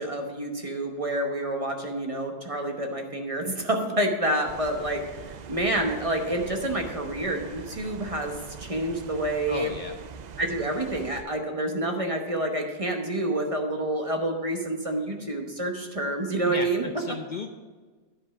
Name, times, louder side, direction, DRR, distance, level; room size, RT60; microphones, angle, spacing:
voice 1, 0.0-9.7 10.4-16.8, right 1 dB, 30° right, 3 dB, 1.0 m, -28 dB
sound 1, 4.5-11.2, right 6 dB, 55° right, 0.5 m, -42 dB
voice 2, 9.5-9.9 16.5-17.5, left 3 dB, 50° left, 5 dB, 0.7 m, -35 dB
10.0 x 5.4 x 5.9 m, 1.4 s
omnidirectional pair, 1.2 m